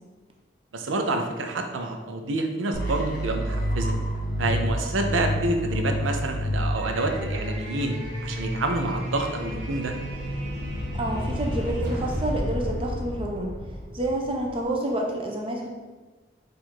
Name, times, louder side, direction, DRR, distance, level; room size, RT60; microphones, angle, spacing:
voice 1, 0.7-3.9 4.4-7.9 8.2-9.9, right 2 dB, 85° right, 4 dB, 0.5 m, -28 dB
sound 1, 2.7-8.7, equal, 45° left, 0.6 m, -29 dB
sound 2, 6.8-14.6, equal, 70° right, 1.2 m, -32 dB
voice 2, 10.9-13.6 13.9-15.7, right 1 dB, 30° right, 0 dB, 0.6 m, -28 dB
4.5 x 2.5 x 4.3 m, 1.3 s
head